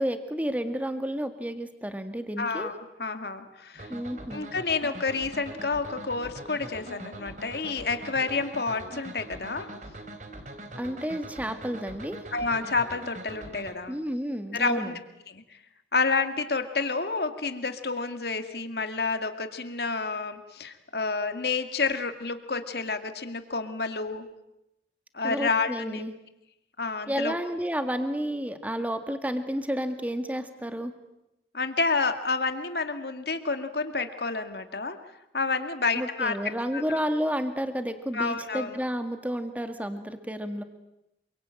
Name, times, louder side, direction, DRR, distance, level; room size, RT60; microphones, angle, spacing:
voice 1, 0.0-2.7 3.9-4.5 10.8-12.2 13.9-15.0 25.2-26.1 27.1-30.9 36.0-40.6, equal, 10° right, 8 dB, 1.8 m, -31 dB
voice 2, 2.4-3.9 4.3-9.7 12.3-14.0 14.5-15.0 15.3-15.4 15.9-24.3 25.1-26.0 26.8-27.3 31.5-35.0 35.3-36.4 36.7-37.0 38.1-38.7, left 4 dB, 70° left, 8 dB, 2.1 m, -29 dB
sound 1, 3.7-13.7, right 1 dB, 45° right, 3.1 m, -42 dB
27.5 x 24.0 x 9.0 m, 0.88 s
head